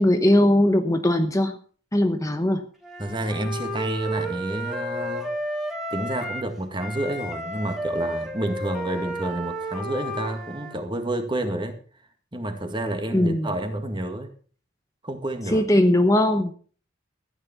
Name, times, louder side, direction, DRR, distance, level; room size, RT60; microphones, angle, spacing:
voice 1, 0.0-1.6 1.9-2.7 13.1-13.5 15.5-16.5, left 1 dB, 15° left, 7 dB, 1.0 m, -20 dB
Wind instrument woodwind instrument, 2.8-6.5 6.8-10.8, equal, ahead, 2.7 m, -32 dB
voice 2, 3.0-5.3 5.9-11.8 12.3-14.3 15.0-15.7, right 1 dB, 25° right, 6 dB, 1.9 m, -29 dB
14.5 x 9.7 x 5.9 m, 0.43 s
head